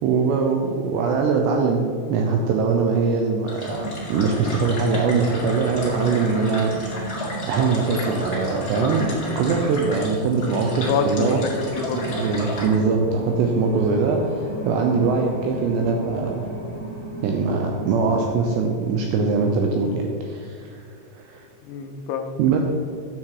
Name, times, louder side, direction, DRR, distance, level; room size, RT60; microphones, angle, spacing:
voice 1, 0.0-6.7 7.4-9.1 9.4-11.4 11.9-14.2 14.7-16.5 17.2-20.8 21.2-21.4 22.4-22.6, right 4 dB, 80° right, 2 dB, 2.6 m, -22 dB
sound 1, 3.5-12.7, left 1 dB, 45° left, 1.2 m, -33 dB
sound 2, 3.6-18.5, right 1 dB, 50° right, 0.9 m, -34 dB
voice 2, 10.9-12.2 21.7-22.4, left 5 dB, 85° left, 6 dB, 2.9 m, -26 dB
9.8 x 7.4 x 4.8 m, 2.3 s
omnidirectional pair, 5.6 m